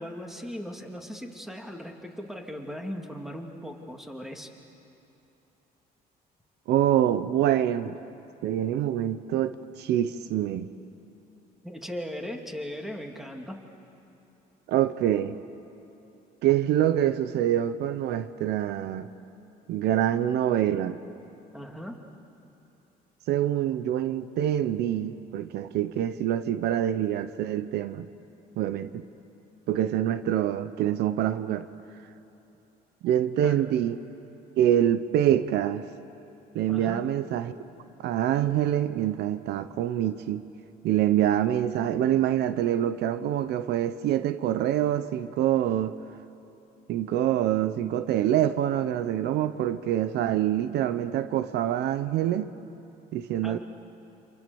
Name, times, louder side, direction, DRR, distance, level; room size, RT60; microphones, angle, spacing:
voice 1, 0.0-4.5 11.6-13.6 21.5-21.9 33.4-33.6 36.7-37.0 53.4-53.6, equal, ahead, 2 dB, 2.6 m, -38 dB
voice 2, 6.7-7.9 8.4-10.7 14.7-15.4 16.4-19.1 19.7-21.0 23.3-28.1 28.6-29.0 29.7-31.7 33.0-34.0 34.6-35.9 36.5-37.5 38.0-40.4 40.8-46.0 46.9-52.5 53.1-53.6, right 11 dB, 80° right, 12 dB, 0.9 m, -25 dB
28.5 x 27.0 x 7.1 m, 2.9 s
cardioid pair, 110°, 17 cm